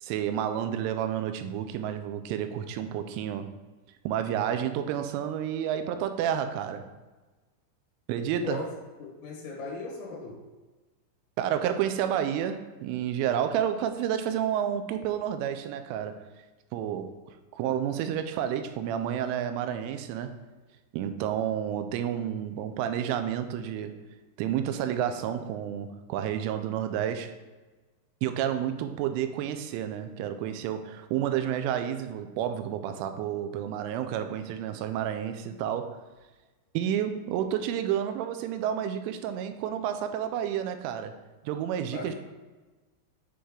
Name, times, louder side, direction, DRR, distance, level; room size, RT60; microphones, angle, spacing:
voice 1, 0.0-3.5 4.1-6.9 8.1-8.6 11.4-16.3 16.7-17.1 17.5-20.4 20.9-24.0 24.4-27.3 28.2-36.0 36.7-41.2 41.5-42.1, right 9 dB, 90° right, 8 dB, 3.0 m, -30 dB
voice 2, 9.0-10.4 41.9-42.2, left 3 dB, 70° left, -4 dB, 3.9 m, -37 dB
9.3 x 3.3 x 3.7 m, 1.2 s
omnidirectional pair, 5.5 m